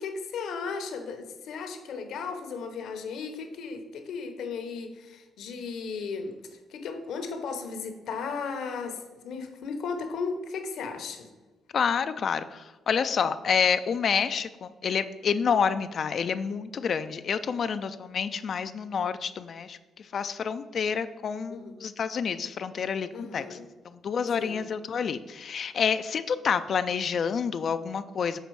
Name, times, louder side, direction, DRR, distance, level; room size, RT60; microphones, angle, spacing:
voice 1, 0.0-6.4 6.7-11.3 21.5-21.7 23.1-23.6 24.4-24.6, left 5 dB, 75° left, 6 dB, 0.9 m, -35 dB
voice 2, 11.7-23.6 23.9-28.4, left 6 dB, 55° left, 10 dB, 0.3 m, -28 dB
6.6 x 4.2 x 4.6 m, 1.2 s
cardioid pair, 90°, 0 cm